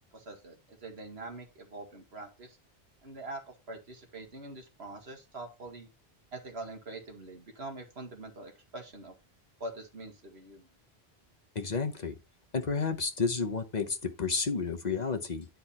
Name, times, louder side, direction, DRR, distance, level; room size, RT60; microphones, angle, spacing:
voice 1, 0.1-2.6 3.0-5.9 6.3-9.1 9.6-10.7, right 2 dB, 80° right, 2.1 m, -44 dB
voice 2, 11.5-12.2 12.5-15.5, left 4 dB, 45° left, 1.0 m, -31 dB
10.5 x 4.6 x 4.2 m
omnidirectional pair, 1.0 m